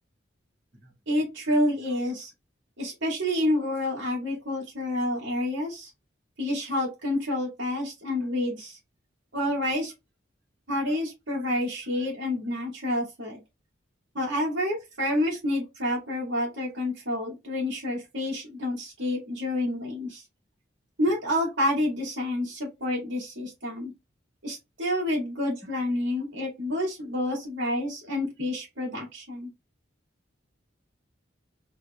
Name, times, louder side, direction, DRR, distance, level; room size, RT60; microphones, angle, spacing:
voice 1, 1.1-2.3 2.8-5.9 6.4-8.8 9.3-9.9 10.7-13.4 14.1-20.2 21.0-23.9 24.4-29.5, left 1 dB, 80° right, 2.4 m, -28 dB
4.8 x 3.4 x 2.2 m
head